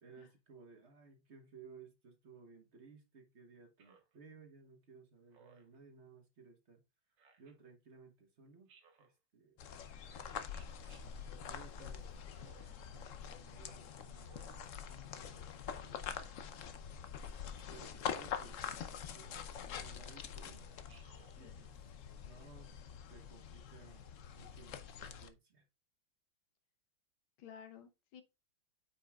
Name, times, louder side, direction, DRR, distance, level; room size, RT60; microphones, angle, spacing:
voice 1, 0.0-6.8 7.4-8.7 9.0-9.6 11.5-16.5 17.7-20.7 21.4-21.8 22.2-22.7 23.1-25.6, right 5 dB, 40° right, 1.2 m, -59 dB
Speech synthesizer, 3.8-4.2 5.3-5.8 7.2-7.5 8.7-9.1 10.5-11.0 12.3-12.9 14.1-14.7 15.9-16.4 17.6-17.9 19.2-19.6 20.9-21.4, right 5 dB, 70° right, 2.0 m, -64 dB
sound 1, 9.6-25.3, left 8 dB, 65° left, 0.8 m, -45 dB
voice 2, 27.4-28.2, left 8 dB, 85° left, 1.8 m, -54 dB
8.6 x 5.3 x 2.4 m
omnidirectional pair, 2.1 m